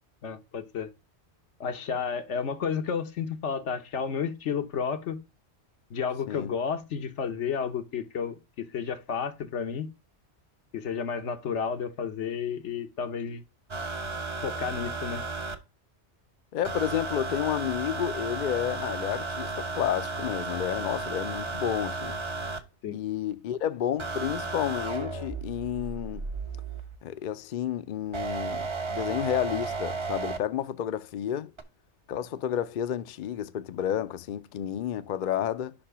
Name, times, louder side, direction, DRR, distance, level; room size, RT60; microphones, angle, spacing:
voice 1, 0.2-0.9 1.6-5.2 5.9-9.9 10.7-13.4 14.4-15.2 22.8-23.0, left 6 dB, 85° left, 1.3 m, -31 dB
sound 1, 13.7-15.6 16.6-22.6 24.0-27.0 28.1-30.4 31.6-31.7, right 3 dB, 30° right, 0.6 m, -34 dB
voice 2, 16.5-22.1 22.9-26.2 27.0-31.5 32.1-35.7, left 10 dB, 55° left, 0.6 m, -31 dB
5.6 x 4.4 x 5.5 m
omnidirectional pair, 1.2 m